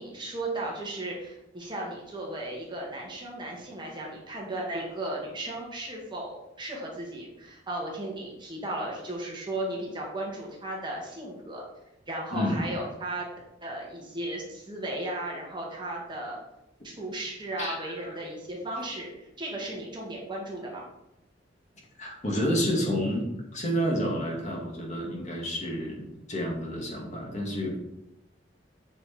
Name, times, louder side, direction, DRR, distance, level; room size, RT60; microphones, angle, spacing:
voice 1, 0.0-11.6 12.1-13.3 13.6-16.4 16.8-20.8, right 1 dB, 25° right, -2 dB, 2.0 m, -35 dB
voice 2, 12.3-12.7 17.6-18.2 22.0-27.8, equal, 40° left, -1 dB, 2.2 m, -30 dB
8.6 x 5.3 x 4.4 m, 0.88 s
head